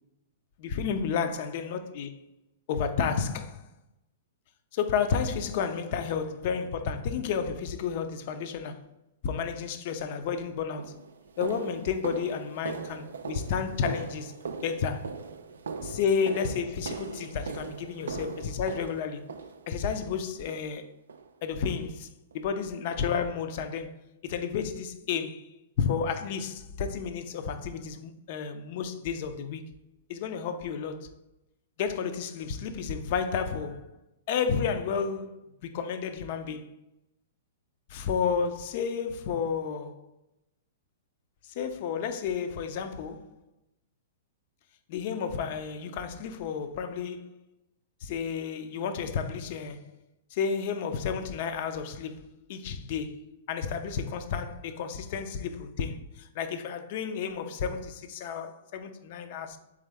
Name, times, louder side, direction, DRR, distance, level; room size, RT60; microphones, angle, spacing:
voice 1, 0.6-2.1 2.7-3.6 4.7-8.8 9.2-10.9 11.4-14.3 14.6-15.2 15.8-19.3 19.7-20.8 21.4-24.0 24.2-29.7 30.1-31.1 31.8-33.9 34.3-36.7 37.9-40.0 41.4-43.3 44.9-47.3 48.0-49.9 50.3-59.6, left 6 dB, 50° left, 0.4 m, -31 dB
sound 1, 10.1-10.2 10.8-20.0 20.5-20.8 21.1-21.3 21.7-21.9 22.3-22.4 22.9-23.0, right 5 dB, 75° right, 0.3 m, -40 dB
3.6 x 3.3 x 3.2 m
figure-of-eight pair, 110°, 0 cm